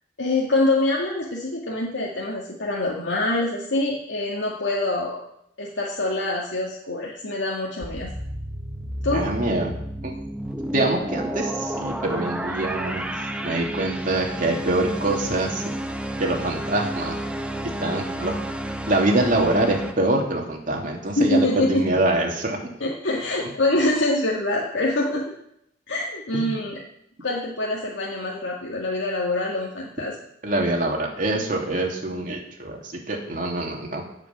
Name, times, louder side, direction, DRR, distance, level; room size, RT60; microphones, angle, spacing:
voice 1, 0.2-5.2 5.6-8.1 9.0-9.3 21.2-21.8 22.8-25.3 25.9-26.8 27.2-30.2, left 2 dB, 85° left, -3 dB, 2.1 m, -25 dB
sound 1, 7.8-19.9, right 1 dB, 5° right, 1.0 m, -31 dB
voice 2, 9.1-9.7 10.0-10.1 10.7-13.0 13.4-15.6 16.2-17.2 17.8-18.4 18.9-22.7 26.3-26.5 30.4-34.0, right 2 dB, 45° right, 0 dB, 2.8 m, -24 dB
17.0 x 5.9 x 7.4 m, 0.75 s
head